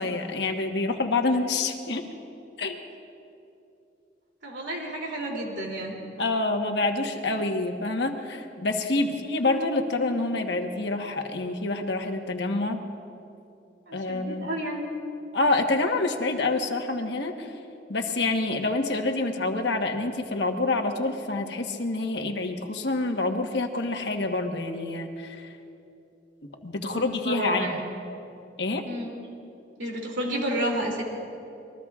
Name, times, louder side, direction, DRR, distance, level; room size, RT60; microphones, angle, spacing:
voice 1, 0.0-2.0 2.6-2.8 6.2-12.8 13.9-14.5 15.3-17.5 17.9-25.5 26.6-27.7 28.6-28.9, left 2 dB, 65° left, 4 dB, 1.2 m, -27 dB
voice 2, 4.4-5.9 9.1-9.3 13.9-14.8 26.8-27.8 28.8-29.1 29.8-31.0, right 1 dB, 75° right, -1 dB, 2.9 m, -31 dB
26.5 x 21.0 x 2.4 m, 2.7 s
head